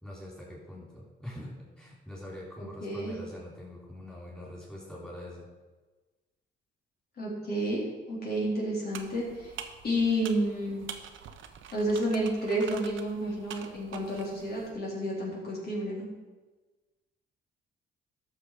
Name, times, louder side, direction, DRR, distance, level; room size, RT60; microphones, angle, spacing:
voice 1, 0.0-5.5, left 1 dB, 5° left, -4 dB, 3.8 m, -44 dB
voice 2, 2.8-3.1 7.2-9.5 9.8-10.9 11.7-16.1, equal, 50° left, -5 dB, 4.0 m, -30 dB
sound 1, 8.9-14.7, right 8 dB, 75° right, 1.0 m, -46 dB
12.5 x 6.7 x 5.1 m, 1.2 s
cardioid pair, 90°, 20 cm